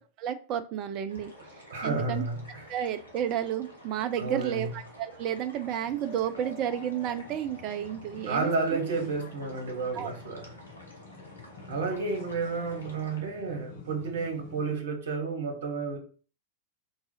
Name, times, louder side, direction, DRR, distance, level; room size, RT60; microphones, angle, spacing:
voice 1, 0.2-1.3 1.8-2.2 2.7-8.5 9.9-10.1, right 10 dB, 40° right, 9 dB, 0.3 m, -31 dB
sound 1, 1.1-13.2, equal, 75° left, 1.0 m, -51 dB
voice 2, 1.7-2.7 4.2-4.7 8.3-10.5 11.7-16.0, right 4 dB, 60° right, 4 dB, 1.0 m, -31 dB
sound 2, 5.8-14.7, left 5 dB, 50° left, 0.7 m, -49 dB
3.9 x 2.4 x 4.0 m, 0.39 s
figure-of-eight pair, 90°, 0 cm